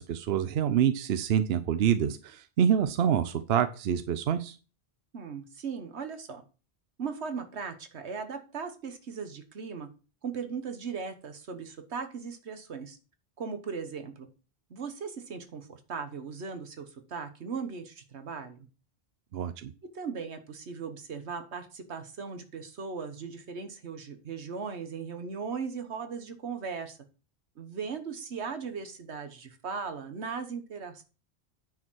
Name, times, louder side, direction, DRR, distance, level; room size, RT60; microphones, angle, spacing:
voice 1, 0.0-4.6 19.3-19.7, right 8 dB, 70° right, 10 dB, 0.9 m, -26 dB
voice 2, 5.1-6.4 7.0-9.9 10.2-13.0 13.4-14.3 14.7-18.7 19.9-27.0 27.6-31.0, right 5 dB, 90° right, 8 dB, 1.5 m, -38 dB
9.4 x 4.9 x 6.2 m, 0.34 s
omnidirectional pair, 1.1 m